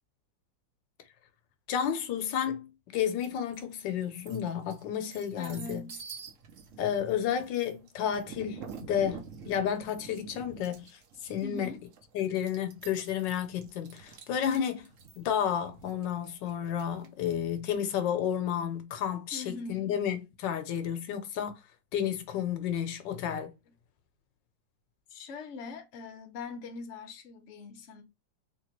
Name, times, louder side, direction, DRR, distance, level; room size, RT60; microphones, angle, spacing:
voice 1, 1.7-5.8 6.8-11.8 12.1-14.9 15.2-21.6 21.9-23.5, left 9 dB, 75° left, 1.3 m, -31 dB
sound 1, 3.2-3.6 4.0-17.3, right 6 dB, 65° right, 0.8 m, -48 dB
voice 2, 5.4-6.0 11.4-11.8 19.3-20.0 25.1-28.0, left 4 dB, 55° left, 0.9 m, -42 dB
3.6 x 2.9 x 2.9 m
omnidirectional pair, 2.0 m